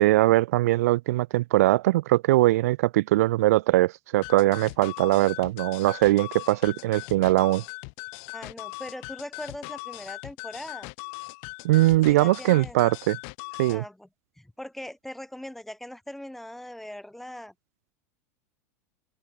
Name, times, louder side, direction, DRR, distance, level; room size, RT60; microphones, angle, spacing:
voice 1, 0.0-7.6 11.6-13.2 13.6-13.8, right 17 dB, 80° right, 0.4 m, -21 dB
sound 1, 4.2-13.8, left 40 dB or more, 55° left, 0.8 m, -40 dB
voice 2, 8.3-10.9 12.1-12.8 13.7-14.1 14.4-17.5, left 1 dB, 5° left, 0.4 m, -40 dB
open air
supercardioid pair, 140°, 8 cm